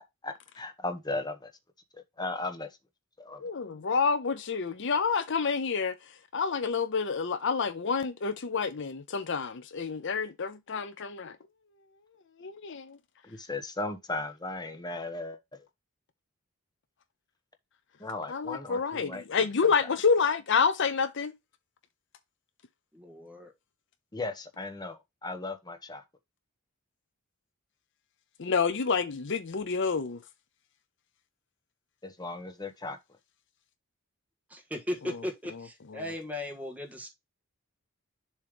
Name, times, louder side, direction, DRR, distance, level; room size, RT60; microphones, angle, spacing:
voice 1, 0.2-1.5 2.2-2.8 3.2-3.4 13.2-15.6 18.0-19.2 24.1-26.0 32.0-33.0, left 2 dB, 20° left, 1.1 m, -36 dB
voice 2, 3.4-11.4 12.4-13.0 18.3-21.3 28.4-30.2, left 5 dB, 55° left, 0.7 m, -28 dB
voice 3, 22.9-23.5 34.5-37.1, left 1 dB, 5° right, 1.5 m, -37 dB
7.1 x 3.2 x 5.0 m
head